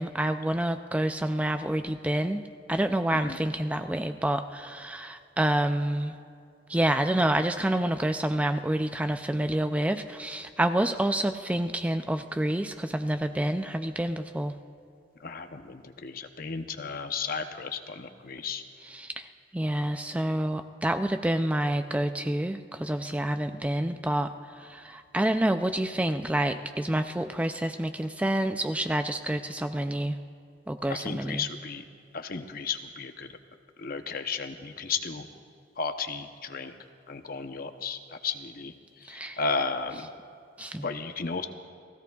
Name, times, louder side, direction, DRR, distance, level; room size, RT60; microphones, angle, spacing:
voice 1, 0.0-2.4 2.7-6.1 6.7-14.5 18.8-19.3 19.5-24.3 24.6-30.2 30.7-31.4 39.1-39.4 40.6-40.9, right 1 dB, 5° right, 8 dB, 0.3 m, -28 dB
voice 2, 15.2-18.6 30.9-31.8 32.1-33.3 33.8-35.3 35.8-36.7 37.1-38.7 39.1-40.1 40.8-41.5, left 5 dB, 50° left, 7 dB, 0.7 m, -34 dB
29.5 x 16.5 x 2.3 m, 2.5 s
head